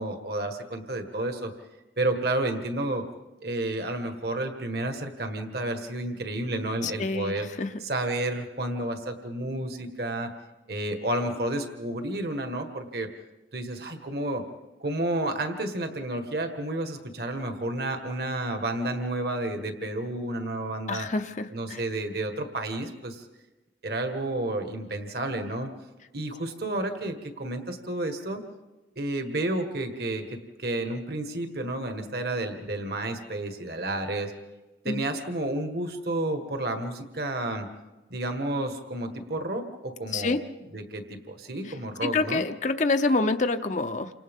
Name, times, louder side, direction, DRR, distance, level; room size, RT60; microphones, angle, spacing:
voice 1, 0.0-1.5 2.0-3.1 3.4-7.5 7.8-10.3 10.7-13.1 13.5-14.4 14.8-21.1 21.5-23.3 23.8-25.7 26.1-28.4 28.9-34.3 34.8-37.7 38.1-40.3 40.7-42.4, right 1 dB, 60° right, 5 dB, 1.7 m, -31 dB
voice 2, 6.8-7.7 20.9-21.8 34.9-35.0 40.1-40.4 42.0-44.1, left 3 dB, 40° left, 7 dB, 0.7 m, -27 dB
29.0 x 26.0 x 3.7 m, 1.1 s
head